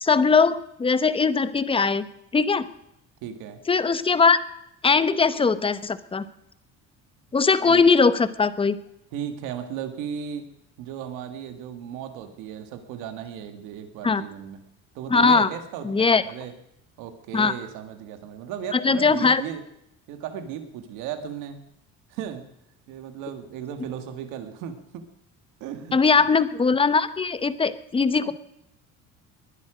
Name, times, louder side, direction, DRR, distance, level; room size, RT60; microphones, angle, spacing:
voice 1, 0.0-2.1 2.3-2.7 3.7-4.4 4.8-6.3 7.3-8.8 14.0-14.2 15.1-15.5 15.8-16.2 17.3-17.5 18.7-19.4 25.9-28.3, left 4 dB, 20° left, 14 dB, 0.9 m, -20 dB
voice 2, 3.2-3.6 7.7-7.9 9.1-10.5 10.8-14.6 14.9-16.6 17.0-19.6 20.1-21.6 22.1-22.5 22.9-25.0 25.6-26.0 28.2-28.3, right 9 dB, 90° right, 8 dB, 1.9 m, -36 dB
20.5 x 12.0 x 5.1 m, 0.80 s
cardioid pair, 135°, 30 cm